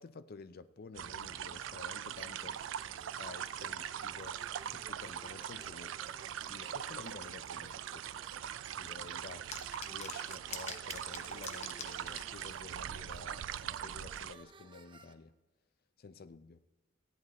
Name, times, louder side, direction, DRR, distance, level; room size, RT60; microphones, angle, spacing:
voice 1, 0.0-2.6 3.2-6.0 6.4-8.1 8.7-9.5 9.9-15.3 16.0-16.6, left 4 dB, 50° left, 0.5 m, -51 dB
sound 1, 0.9-14.3, right 10 dB, 75° right, 0.4 m, -42 dB
sound 2, 2.2-15.1, right 3 dB, 25° right, 0.6 m, -58 dB
sound 3, 9.5-12.5, left 6 dB, 35° left, 0.9 m, -45 dB
14.5 x 9.7 x 4.3 m
head